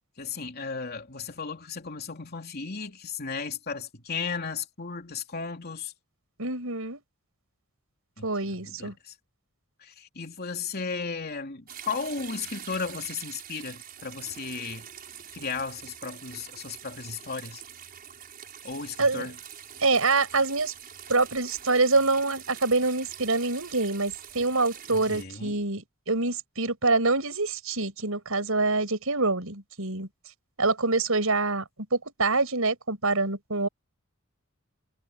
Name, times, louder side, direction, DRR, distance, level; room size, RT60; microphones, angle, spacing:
voice 1, 0.2-5.9 8.2-8.3 8.6-9.1 9.8-14.9 15.3-17.6 18.6-19.4 24.9-25.6, left 5 dB, 50° left, 3.3 m, -35 dB
voice 2, 6.4-7.0 8.2-8.9 19.0-19.3 19.8-20.7 21.1-30.1 30.6-31.6 31.9-33.7, right 3 dB, 80° right, 5.7 m, -25 dB
sound 1, 11.7-25.2, right 9 dB, 45° right, 5.8 m, -45 dB
head